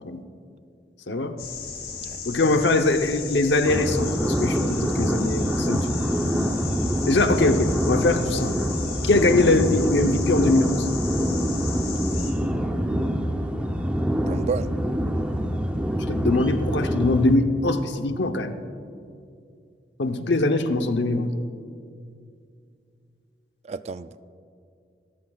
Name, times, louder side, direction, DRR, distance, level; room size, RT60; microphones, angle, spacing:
sound 1, 1.4-12.3, left 5 dB, 65° left, 3.3 m, -35 dB
voice 1, 2.3-6.0 7.1-8.6 9.0-10.9 16.1-18.5 20.0-21.3, left 2 dB, 80° left, 7 dB, 0.9 m, -22 dB
sound 2, 3.6-17.3, equal, 5° right, 0.7 m, -25 dB
voice 2, 14.2-14.7 23.7-24.2, right 5 dB, 40° right, 13 dB, 0.4 m, -31 dB
27.0 x 14.0 x 2.4 m, 2.4 s
head